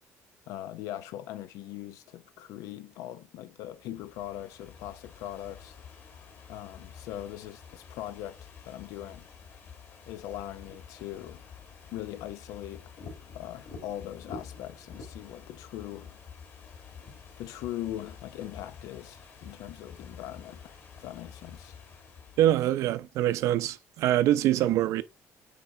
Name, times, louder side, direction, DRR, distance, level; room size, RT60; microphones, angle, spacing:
voice 1, 0.5-5.8 6.5-9.3 10.1-11.4 11.9-12.9 13.3-16.2 17.4-21.8, left 13 dB, 90° left, 0.7 m, -40 dB
Ocean / Fireworks, 3.7-22.9, left 5 dB, 45° left, 2.1 m, -49 dB
voice 2, 22.4-25.0, right 13 dB, 65° right, 0.6 m, -24 dB
8.8 x 4.5 x 3.8 m
cardioid pair, 170°, 6 cm